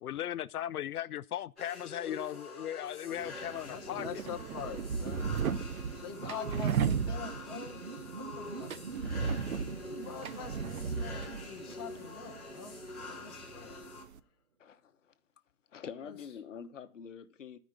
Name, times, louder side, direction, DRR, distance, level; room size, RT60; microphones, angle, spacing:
voice 1, 0.0-4.1, left 11 dB, 80° left, 0.6 m, -37 dB
sound 1, 1.6-14.0, left 3 dB, ahead, 1.5 m, -46 dB
sound 2, 3.1-14.2, right 6 dB, 70° right, 1.0 m, -36 dB
voice 2, 3.6-5.4 6.0-7.8 8.2-8.7 9.9-13.8 16.0-16.2, left 7 dB, 15° left, 1.0 m, -45 dB
sound 3, 3.9-13.5, right 5 dB, 35° right, 0.8 m, -48 dB
voice 3, 14.6-15.1 15.7-17.6, left 7 dB, 55° left, 1.1 m, -46 dB
13.0 x 5.2 x 8.1 m
hypercardioid pair, 180°, 44 cm